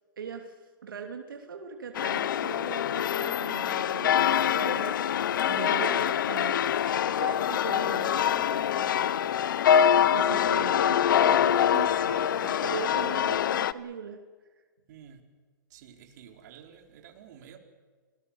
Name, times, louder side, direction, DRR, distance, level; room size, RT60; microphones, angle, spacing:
voice 1, 0.2-9.9 10.1-14.2, right 6 dB, 85° right, 3 dB, 2.9 m, -40 dB
sound 1, 1.9-13.7, left 9 dB, 70° left, 0.9 m, -25 dB
sound 2, 7.8-13.5, left 13 dB, 50° left, 1.4 m, -46 dB
voice 2, 14.9-15.2 15.7-17.6, right 8 dB, 55° right, 3 dB, 4.1 m, -50 dB
29.0 x 20.0 x 7.2 m, 1.5 s
hypercardioid pair, 135°, 11 cm